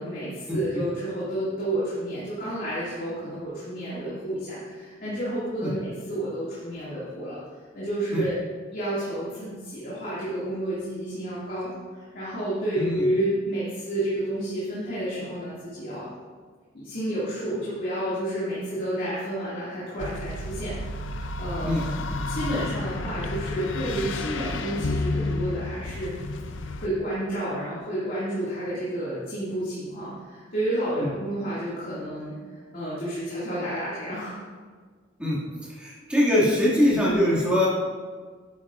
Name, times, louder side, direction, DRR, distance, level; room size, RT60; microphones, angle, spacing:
voice 1, 0.0-7.4 7.7-8.4 8.7-16.1 16.7-26.2 26.5-34.4, right 1 dB, 50° left, -10 dB, 2.3 m, -30 dB
sound 1, 20.0-26.9, left 2 dB, 75° left, 0.5 m, -31 dB
voice 2, 35.7-37.7, left 1 dB, 5° right, -7 dB, 2.3 m, -22 dB
9.6 x 9.4 x 2.5 m, 1.5 s
head